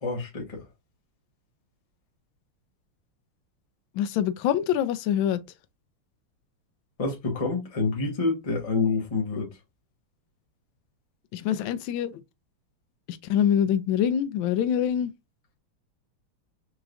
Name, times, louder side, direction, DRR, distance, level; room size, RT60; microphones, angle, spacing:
voice 1, 0.0-0.6 7.0-9.5, left 4 dB, 45° left, 0.4 m, -27 dB
voice 2, 3.9-5.4 11.3-12.2 13.1-15.1, left 9 dB, 75° left, 1.2 m, -25 dB
4.6 x 3.1 x 2.5 m
omnidirectional pair, 2.4 m